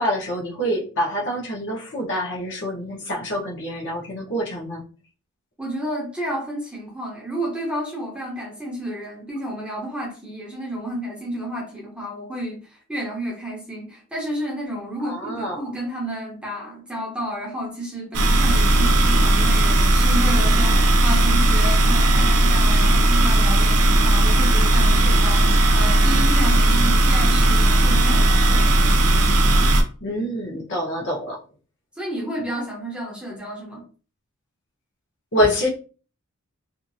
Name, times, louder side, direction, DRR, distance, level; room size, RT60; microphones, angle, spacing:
voice 1, 0.0-4.8 15.0-15.8 30.0-31.4 35.3-35.7, equal, 55° left, 0.9 m, -26 dB
voice 2, 5.6-28.7 32.0-33.8, right 1 dB, 5° right, 0.7 m, -31 dB
sound 1, 18.1-29.8, right 1 dB, 80° right, 0.6 m, -16 dB
2.7 x 2.5 x 2.6 m
head